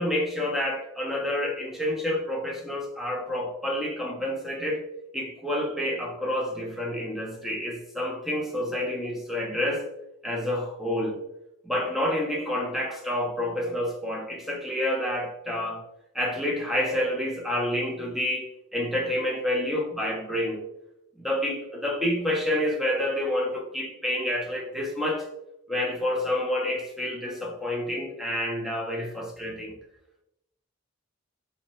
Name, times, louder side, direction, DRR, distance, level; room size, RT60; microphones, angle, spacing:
voice 1, 0.0-4.8 5.1-9.9 10.2-11.2 11.6-15.8 16.1-20.6 21.2-25.3 25.7-29.8, left 1 dB, ahead, 0 dB, 0.4 m, -28 dB
3.0 x 2.1 x 2.8 m, 0.84 s
head